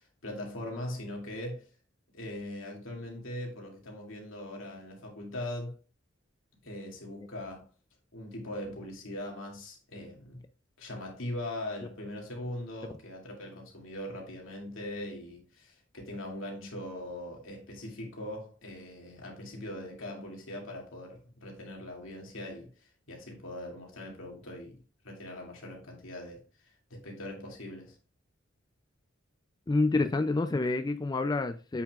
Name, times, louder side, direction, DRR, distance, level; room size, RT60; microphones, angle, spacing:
voice 1, 0.0-1.7 2.1-5.8 6.6-7.7 8.1-10.4 10.8-24.8 25.0-26.4 26.9-28.0, left 1 dB, 85° left, 2.5 m, -41 dB
voice 2, 29.7-31.8, left 3 dB, 20° left, 0.4 m, -28 dB
8.1 x 6.2 x 2.4 m
head